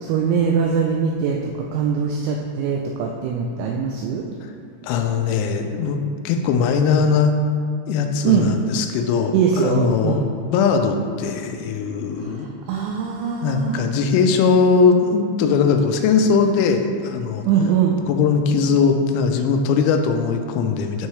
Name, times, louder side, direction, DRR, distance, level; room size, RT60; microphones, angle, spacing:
voice 1, 0.0-4.2 8.2-8.5 9.3-10.3 12.4-13.8 17.5-18.0, right 6 dB, 85° right, 1 dB, 2.7 m, -22 dB
voice 2, 4.8-7.4 7.9-10.2 10.5-12.5 13.4-17.4 18.1-21.1, left 5 dB, 85° left, 5 dB, 3.3 m, -20 dB
12.0 x 4.5 x 3.2 m, 2.3 s
omnidirectional pair, 6.0 m